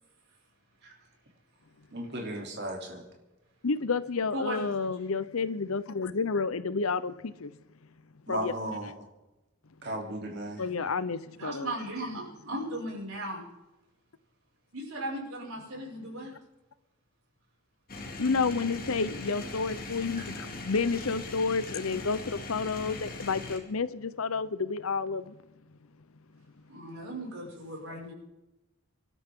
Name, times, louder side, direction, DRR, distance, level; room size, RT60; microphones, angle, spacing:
voice 1, 1.9-3.0 8.3-9.0 9.8-10.6, right 1 dB, 50° right, 3.1 m, -35 dB
voice 2, 3.6-7.6 8.3-8.5 10.6-11.7 18.2-25.4 27.9-28.1, left 4 dB, 85° left, 0.8 m, -30 dB
voice 3, 4.3-4.9 11.4-13.4 14.7-16.3 20.2-20.3 26.7-28.1, right 1 dB, 85° right, 6.0 m, -37 dB
sound 1, 17.9-23.6, left 2 dB, 45° left, 2.3 m, -40 dB
25.5 x 12.5 x 3.8 m
head